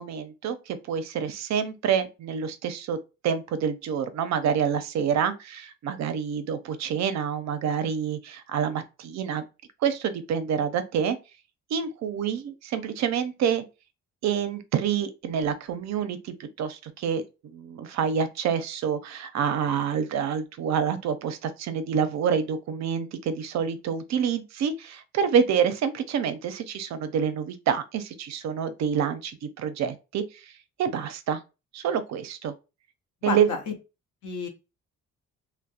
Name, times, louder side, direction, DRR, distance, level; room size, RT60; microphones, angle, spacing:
voice 1, 0.0-3.0 3.2-9.5 9.8-11.2 11.7-13.6 14.2-17.2 17.5-30.5 30.8-31.4 31.7-32.5 33.2-33.5, right 7 dB, 65° right, 0.5 m, -27 dB
voice 2, 33.2-33.7 34.2-34.5, left 5 dB, 75° left, 0.7 m, -30 dB
2.3 x 2.0 x 2.7 m
cardioid pair, 90°, 30 cm